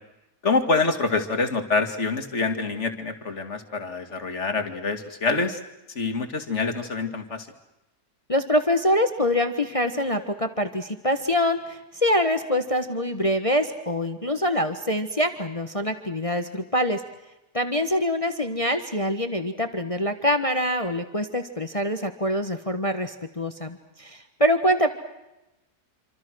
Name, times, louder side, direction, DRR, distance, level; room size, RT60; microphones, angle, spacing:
voice 1, 0.4-5.6 6.0-7.5, left 3 dB, 45° left, 6 dB, 2.6 m, -26 dB
voice 2, 8.3-17.0 17.5-24.9, equal, 20° left, 8 dB, 1.4 m, -25 dB
27.5 x 26.5 x 6.3 m, 0.95 s
omnidirectional pair, 1.7 m